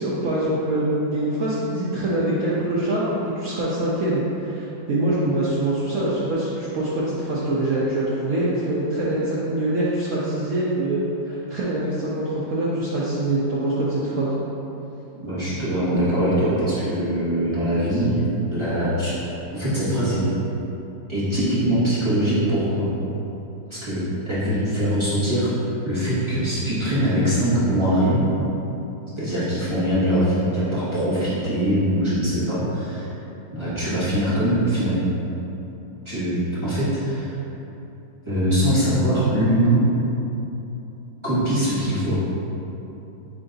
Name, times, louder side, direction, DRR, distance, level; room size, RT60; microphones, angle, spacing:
voice 1, 0.0-14.3, right 1 dB, 75° right, -7 dB, 0.7 m, -24 dB
voice 2, 15.2-18.2 18.5-19.1 19.5-20.2 21.1-22.9 23.7-25.5 25.8-28.2 29.2-33.0 33.5-35.1 36.0-37.4 38.3-39.8 41.2-42.2, equal, 20° right, -13 dB, 0.8 m, -22 dB
3.7 x 3.4 x 3.9 m, 3.0 s
omnidirectional pair, 2.0 m